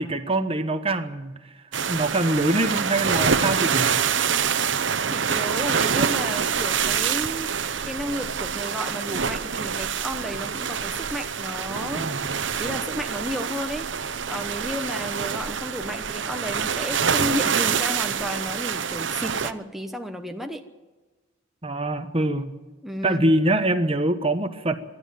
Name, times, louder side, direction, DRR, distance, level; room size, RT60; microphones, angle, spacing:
voice 1, 0.0-1.4 1.9-4.0 12.0-12.4 21.6-22.5 23.0-24.8, right 1 dB, 30° right, 9 dB, 1.1 m, -24 dB
sound 1, 1.7-19.5, right 7 dB, 65° right, 0.9 m, -26 dB
voice 2, 5.1-7.6 7.8-12.2 12.6-13.9 14.2-20.6 22.8-23.3, equal, ahead, 4 dB, 1.0 m, -32 dB
26.5 x 11.5 x 9.1 m, 1.2 s
head